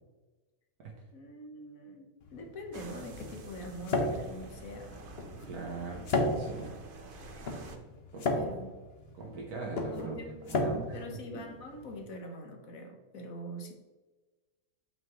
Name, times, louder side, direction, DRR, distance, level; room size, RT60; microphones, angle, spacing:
voice 1, 1.1-5.0 8.3-8.8 9.9-10.6 10.9-13.7, left 1 dB, 65° left, 4 dB, 1.5 m, -44 dB
sound 1, 2.2-12.0, left 2 dB, 45° left, 1.1 m, -35 dB
sound 2, 2.7-7.8, right 2 dB, 45° right, 0.8 m, -48 dB
voice 2, 5.5-6.1 6.3-6.7 8.1-8.5 9.1-10.1 10.5-11.0, right 4 dB, 80° right, -2 dB, 1.6 m, -40 dB
7.9 x 5.9 x 3.1 m, 1.2 s
omnidirectional pair, 1.6 m